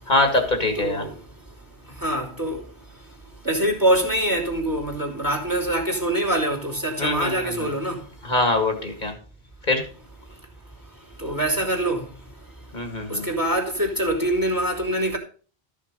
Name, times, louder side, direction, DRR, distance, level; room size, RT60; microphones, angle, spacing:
voice 1, 0.1-1.1 7.0-7.7 8.2-9.1 9.7-9.8 12.7-13.3, left 2 dB, 45° left, 2.0 m, -23 dB
voice 2, 0.7-1.1 2.0-2.6 3.4-8.0 11.2-12.0 13.1-15.2, right 1 dB, 20° right, 3.0 m, -24 dB
13.5 x 6.5 x 5.2 m
omnidirectional pair, 1.1 m